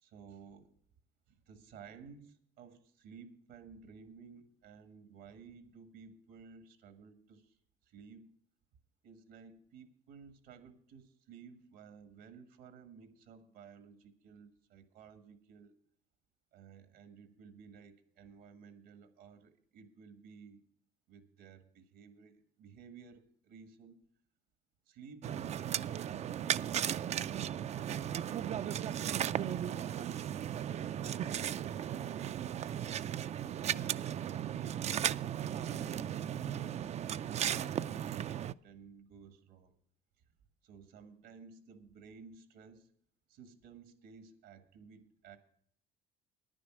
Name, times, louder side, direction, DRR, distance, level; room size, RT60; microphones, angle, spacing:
voice 1, 0.0-0.7 1.5-7.5 7.9-8.3 9.0-15.7 16.5-20.6 21.1-24.0 24.9-29.2 29.6-32.3 33.4-35.0 35.3-38.4 38.6-39.7 40.6-42.9 43.3-45.4, right 6 dB, 85° right, 9 dB, 1.6 m, -55 dB
sound 1, 25.2-38.5, right 10 dB, 40° right, 0.4 m, -36 dB
10.0 x 10.0 x 6.1 m, 0.63 s
cardioid pair, 110°, 17 cm